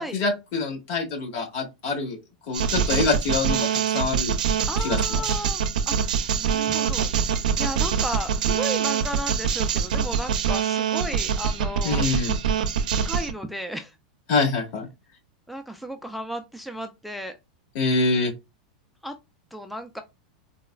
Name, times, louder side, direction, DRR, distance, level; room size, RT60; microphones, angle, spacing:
voice 1, 0.0-2.2 2.5-4.3 4.8-5.3 11.8-12.4 14.3-14.9 17.7-18.3, left 3 dB, 55° left, 1 dB, 1.6 m, -25 dB
sound 1, 2.5-13.3, right 7 dB, 85° right, 0.5 m, -24 dB
voice 2, 4.7-12.0 12.9-13.9 15.5-17.4 19.0-19.1 19.5-20.0, equal, ahead, 6 dB, 0.3 m, -34 dB
3.9 x 2.1 x 2.4 m, 0.23 s
supercardioid pair, 130°, 4 cm